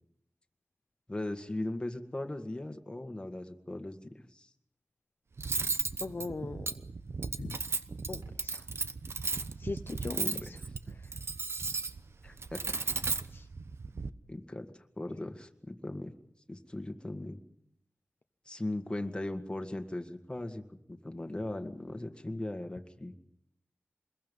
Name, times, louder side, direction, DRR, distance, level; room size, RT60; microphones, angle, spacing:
voice 1, 1.1-4.5 10.1-10.5 12.2-12.8 14.3-16.1 16.5-17.4 18.5-23.1, left 1 dB, 20° left, 5 dB, 1.9 m, -38 dB
Cutlery silverware, 5.4-14.1, right 4 dB, 70° right, 0.9 m, -35 dB
voice 2, 6.0-6.7 7.4-7.6 8.1-8.6 9.6-10.6 13.3-13.5, left 3 dB, 50° left, 7 dB, 0.8 m, -39 dB
26.0 x 21.5 x 5.5 m, 0.78 s
wide cardioid pair, 95°, 5 cm